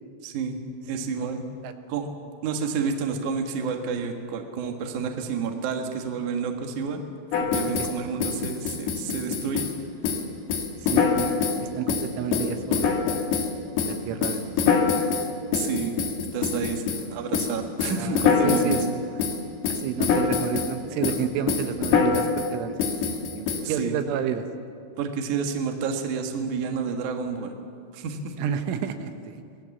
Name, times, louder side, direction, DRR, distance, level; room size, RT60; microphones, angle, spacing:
voice 1, 0.2-0.6 0.9-1.4 1.9-2.1 2.4-7.0 7.4-9.7 15.5-15.9 16.3-18.9 23.6-24.0 25.0-27.5 27.9-28.3, right 5 dB, 55° right, 4 dB, 2.5 m, -30 dB
sound 1, 7.3-7.9 8.2-9.8 10.0-10.2 10.5-11.6 11.9-13.5 13.8-17.0 17.3-17.5 17.8-18.9 19.2-19.4 19.6-20.7 21.0-21.2 21.5-22.5 22.8-23.6, left 6 dB, 65° left, 3.6 m, -24 dB
voice 2, 10.9-11.3 11.6-13.3 13.9-14.9 15.3-15.7 18.0-18.9 19.7-22.8 23.1-24.4 28.4-29.4, right 8 dB, 85° right, 7 dB, 3.6 m, -31 dB
26.5 x 19.5 x 7.3 m, 2.4 s
omnidirectional pair, 5.5 m